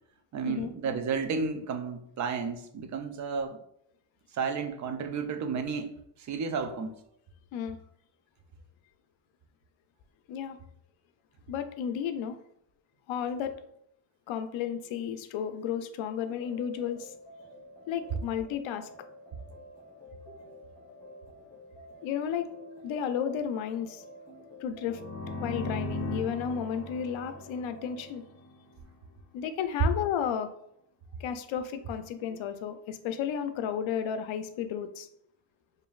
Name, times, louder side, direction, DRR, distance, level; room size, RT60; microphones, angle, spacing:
voice 1, 0.3-3.6 4.3-6.0 6.3-6.9, right 5 dB, 40° right, 6 dB, 0.4 m, -32 dB
voice 2, 11.5-12.4 13.1-13.5 14.3-17.1 17.9-18.9 22.0-22.5 22.8-24.0 24.6-25.0 25.4-28.2 29.3-30.5 31.2-35.1, left 8 dB, 85° left, 9 dB, 0.5 m, -33 dB
sound 1, 16.3-28.2, left 1 dB, 5° left, 1.1 m, -50 dB
sound 2, 24.8-28.5, left 1 dB, 25° left, 0.6 m, -38 dB
5.1 x 2.6 x 2.3 m, 0.74 s
cardioid pair, 150°, 46 cm